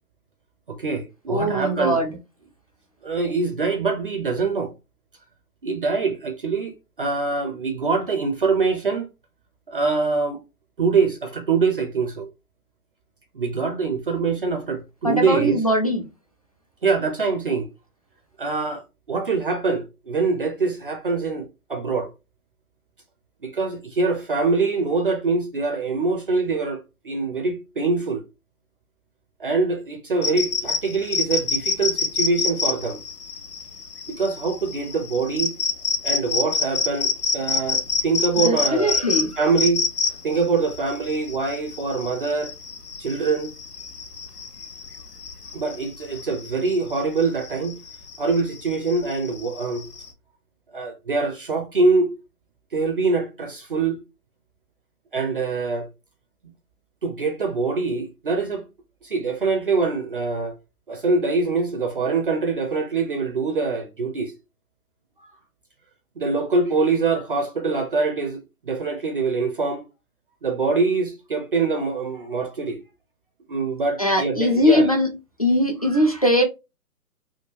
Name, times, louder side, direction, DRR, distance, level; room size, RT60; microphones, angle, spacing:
voice 1, 0.7-2.0 3.0-4.7 5.6-9.1 9.7-10.4 10.8-12.3 13.3-15.6 16.8-17.7 18.4-18.8 19.1-22.1 23.4-28.2 29.4-33.0 34.2-35.5 36.0-39.0 39.4-39.8 40.2-42.5 43.0-43.5 45.5-47.8 48.2-49.9 50.7-52.1 52.7-54.0 55.1-55.9 57.0-58.6 59.0-60.5 60.9-64.3 66.2-69.8 70.4-72.8 73.5-74.9, right 4 dB, 40° right, 0.5 m, -24 dB
voice 2, 1.3-2.1 15.0-16.0 38.4-39.4 74.0-75.1 75.4-76.4, left 1 dB, 25° left, 0.4 m, -20 dB
sound 1, 30.2-50.1, left 5 dB, 90° left, 0.9 m, -27 dB
3.6 x 2.3 x 2.9 m
figure-of-eight pair, 135°, 46 cm